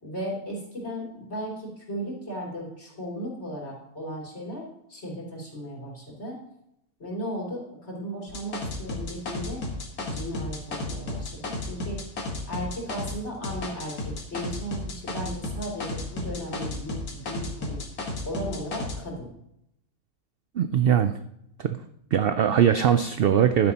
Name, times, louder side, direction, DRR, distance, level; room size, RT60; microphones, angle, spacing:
voice 1, 0.0-6.4 7.0-9.6 10.0-12.0 12.5-17.8 18.2-19.3, equal, 45° left, -4 dB, 3.5 m, -36 dB
sound 1, 8.3-13.2 13.4-19.0, left 2 dB, 85° left, 2.1 m, -33 dB
voice 2, 20.6-21.1 21.6-21.8 22.1-23.7, right 9 dB, 70° right, 10 dB, 0.5 m, -21 dB
11.5 x 9.7 x 2.9 m, 0.79 s
omnidirectional pair, 1.5 m